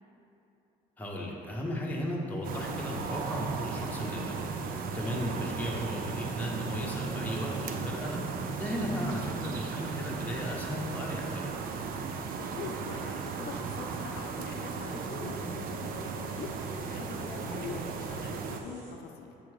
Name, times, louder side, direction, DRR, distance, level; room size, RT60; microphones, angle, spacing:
voice 1, 1.0-8.2 8.6-11.5, equal, 10° left, -3 dB, 0.9 m, -35 dB
sound 1, 2.4-18.6, right 5 dB, 60° right, 0.4 m, -36 dB
sound 2, 4.3-18.9, right 3 dB, 40° right, 1.0 m, -57 dB
voice 2, 12.4-19.3, left 5 dB, 70° left, 2 dB, 0.5 m, -43 dB
7.4 x 2.9 x 4.8 m, 2.9 s
cardioid pair, 110°, 17 cm